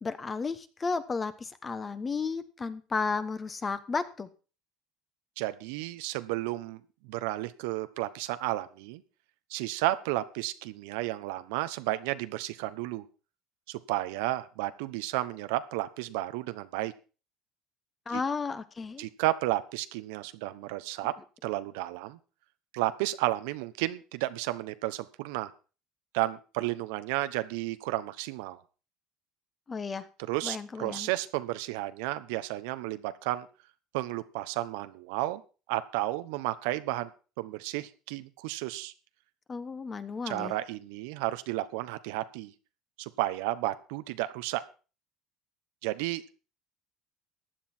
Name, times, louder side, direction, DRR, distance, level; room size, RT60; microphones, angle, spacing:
voice 1, 0.0-4.3 18.1-19.1 29.7-30.1 30.4-31.1 39.5-40.6, left 4 dB, 20° left, 13 dB, 1.1 m, -33 dB
voice 2, 5.4-9.0 9.5-13.0 13.7-16.9 18.1-18.2 19.0-21.1 21.4-22.2 22.7-25.5 26.1-28.6 30.2-33.5 33.9-35.4 35.7-37.1 37.4-38.9 40.3-42.5 43.0-44.6 45.8-46.2, right 17 dB, 90° right, 12 dB, 1.0 m, -32 dB
15.0 x 10.5 x 4.5 m, 0.35 s
cardioid pair, 135°, 0 cm